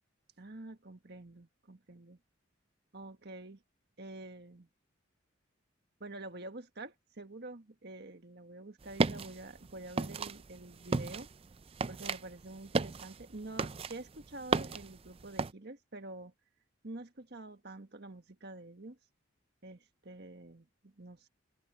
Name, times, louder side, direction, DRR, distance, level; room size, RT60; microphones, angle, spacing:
voice 1, 0.4-2.2 2.9-3.6 4.0-4.7 6.0-11.3 11.9-16.3 16.8-19.0 19.6-21.3, right 2 dB, 55° right, 1.7 m, -47 dB
sound 1, 8.8-15.5, right 4 dB, 30° right, 0.4 m, -35 dB
open air
head